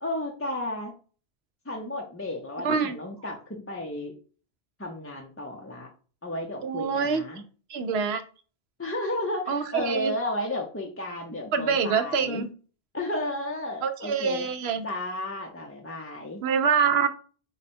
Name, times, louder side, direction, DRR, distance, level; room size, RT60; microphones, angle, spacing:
voice 1, 0.0-0.9 1.7-4.1 4.8-5.9 6.2-7.4 8.8-12.5 12.9-14.5 14.8-16.4, left 1 dB, 20° left, 0 dB, 0.4 m, -33 dB
voice 2, 2.6-3.0 6.6-7.2 7.7-8.2 9.5-10.1 11.5-12.5 13.8-14.8 16.4-17.1, right 6 dB, 75° right, 9 dB, 0.8 m, -25 dB
4.8 x 2.2 x 4.2 m, 0.38 s
omnidirectional pair, 1.1 m